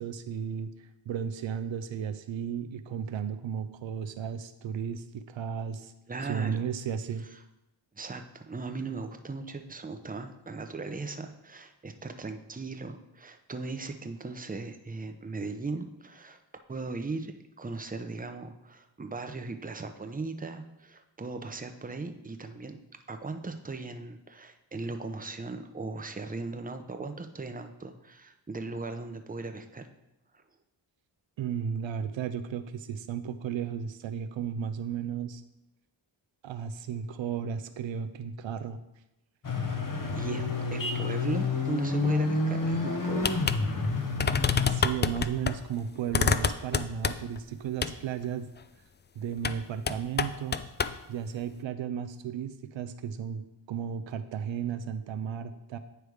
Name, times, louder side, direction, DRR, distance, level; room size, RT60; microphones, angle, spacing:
voice 1, 0.0-5.9 6.2-7.2 31.4-35.4 36.4-38.8 44.7-48.5 49.2-50.6 51.1-55.8, right 7 dB, 80° right, 9 dB, 0.5 m, -34 dB
voice 2, 6.1-6.6 8.0-16.4 16.7-22.8 23.1-29.9 40.1-40.4 40.7-43.3, right 3 dB, 20° right, 7 dB, 0.7 m, -38 dB
sound 1, 39.4-44.8, left 3 dB, 45° left, 1.1 m, -29 dB
sound 2, 43.2-43.6 43.8-43.9 44.2-45.6 46.1-47.4 47.8-48.0 49.4-49.6 49.9-51.0, left 6 dB, 25° left, 0.3 m, -27 dB
9.4 x 3.4 x 4.7 m, 0.93 s
cardioid pair, 50°, 46 cm